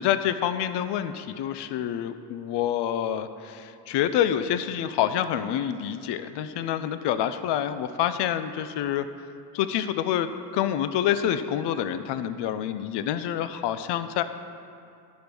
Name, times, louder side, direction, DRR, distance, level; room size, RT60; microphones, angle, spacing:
voice 1, 0.0-9.1 9.5-14.2, left 10 dB, 65° left, 11 dB, 0.6 m, -27 dB
11.5 x 5.1 x 6.1 m, 2.5 s
supercardioid pair, 80°, 44 cm